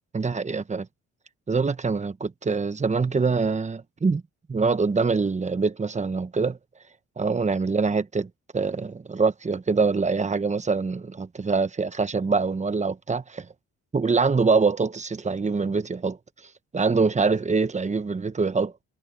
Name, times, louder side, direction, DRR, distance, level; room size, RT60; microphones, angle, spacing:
voice 1, 0.1-0.9 1.5-4.2 4.5-6.6 7.2-13.5 13.9-16.2 16.7-18.7, right 4 dB, 25° right, 1.1 m, -24 dB
cardioid pair, 90°, 30 cm